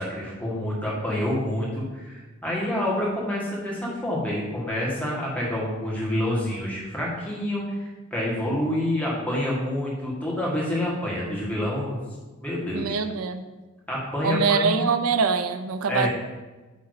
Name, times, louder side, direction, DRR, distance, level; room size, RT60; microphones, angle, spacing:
voice 1, 0.0-12.0 12.4-12.9 13.9-14.7 15.9-16.1, left 1 dB, 5° left, -5 dB, 1.6 m, -27 dB
voice 2, 12.7-13.5 14.2-16.1, right 5 dB, 85° right, 9 dB, 0.5 m, -24 dB
8.3 x 3.1 x 4.9 m, 1.2 s
head